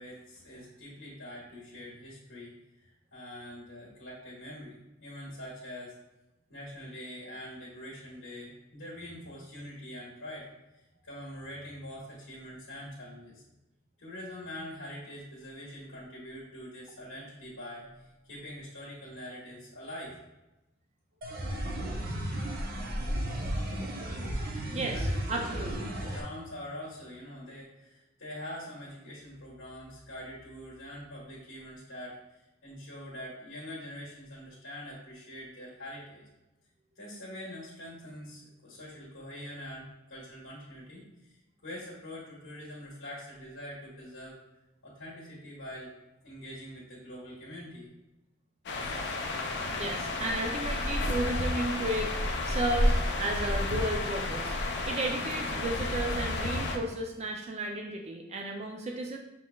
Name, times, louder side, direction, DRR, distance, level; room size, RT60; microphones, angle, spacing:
voice 1, 0.0-5.9 6.5-10.5 10.7-13.4 14.0-20.2 24.9-36.2 36.9-44.4 44.8-45.9 46.2-47.9, left 1 dB, 80° left, -7 dB, 1.3 m, -44 dB
sound 1, 21.2-26.2, equal, 45° right, 0.8 m, -34 dB
voice 2, 24.7-25.7 49.7-54.5 54.9-59.2, right 1 dB, 30° right, 2 dB, 0.4 m, -33 dB
sound 2, 48.7-56.8, left 2 dB, 55° left, 0.5 m, -31 dB
6.1 x 3.7 x 2.3 m, 0.97 s
head